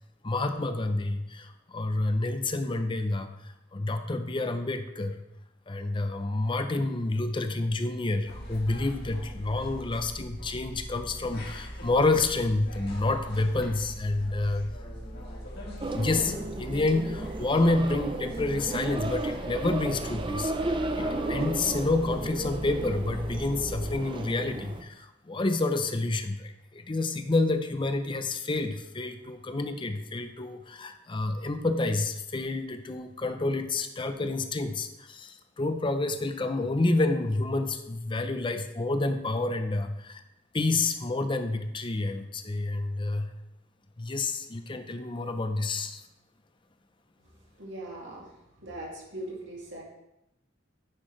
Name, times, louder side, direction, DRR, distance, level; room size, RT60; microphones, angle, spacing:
voice 1, 0.2-3.3 3.7-5.2 5.7-14.7 15.9-40.2 40.5-43.3 44.0-46.0, left 2 dB, 25° left, 8 dB, 0.5 m, -29 dB
sound 1, 8.3-23.9, equal, 55° left, 1.8 m, -41 dB
sound 2, 15.8-24.8, right 2 dB, 25° right, 0.5 m, -34 dB
voice 2, 47.6-49.8, right 1 dB, 65° right, -3 dB, 2.2 m, -40 dB
9.6 x 5.9 x 3.2 m, 0.87 s
head